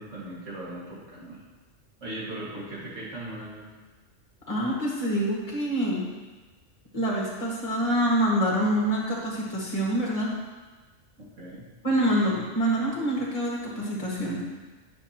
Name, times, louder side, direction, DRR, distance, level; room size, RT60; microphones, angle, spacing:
voice 1, 0.0-1.4 2.0-3.7 11.2-11.6, right 1 dB, 80° right, -7 dB, 2.4 m, -38 dB
voice 2, 4.5-6.1 6.9-10.3 11.8-14.4, equal, 30° left, -4 dB, 1.7 m, -26 dB
9.8 x 5.8 x 2.9 m, 1.3 s
omnidirectional pair, 1.3 m